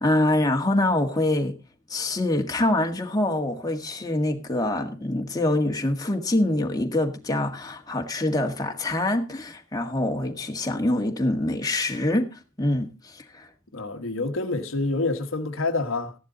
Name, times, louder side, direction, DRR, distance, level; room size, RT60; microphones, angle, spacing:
voice 1, 0.0-1.5 1.9-13.5, left 1 dB, 20° left, 1.8 m, -25 dB
voice 2, 13.7-16.2, left 3 dB, 80° left, 1.4 m, -27 dB
15.0 x 11.0 x 4.0 m
head